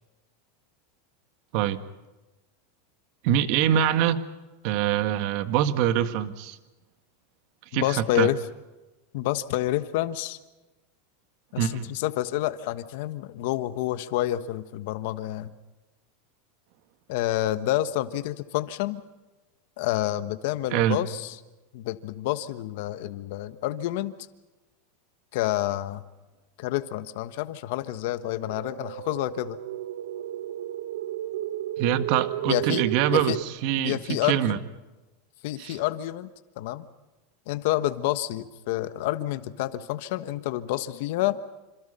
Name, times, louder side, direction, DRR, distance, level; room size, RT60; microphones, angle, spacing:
voice 1, 3.2-4.3 4.6-6.6 7.7-8.3 11.6-11.8 20.7-21.0 31.8-34.6 35.6-35.8, right 10 dB, 50° right, 11 dB, 1.7 m, -24 dB
voice 2, 7.7-8.4 9.1-10.4 11.5-15.5 17.1-19.0 19.8-21.3 21.7-24.1 25.3-26.0 26.6-29.6 32.4-32.9 33.1-33.4 33.8-34.6 35.4-36.3 36.6-36.8 37.5-41.4, left 14 dB, 60° left, 12 dB, 1.3 m, -28 dB
sound 1, 28.4-33.4, right 13 dB, 90° right, 0.8 m, -33 dB
27.0 x 27.0 x 5.6 m, 1.1 s
supercardioid pair, 155°, 0 cm